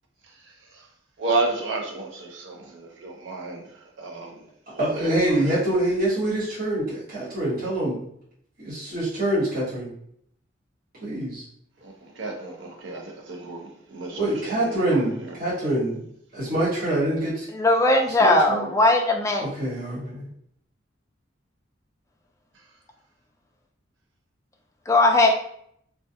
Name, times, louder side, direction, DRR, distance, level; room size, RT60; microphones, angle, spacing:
voice 1, 0.3-0.9 1.2-4.5 4.7-5.5 11.8-15.4 22.5-22.6, right 3 dB, 75° right, 0.6 m, -32 dB
voice 2, 4.8-8.1 8.6-9.9 11.0-11.4 14.2-16.0 16.3-17.5 18.2-18.7 19.4-20.3, right 1 dB, 50° right, 1.1 m, -25 dB
voice 3, 17.5-19.4 24.9-25.3, left 2 dB, 15° left, 0.3 m, -19 dB
2.3 x 2.3 x 2.6 m
head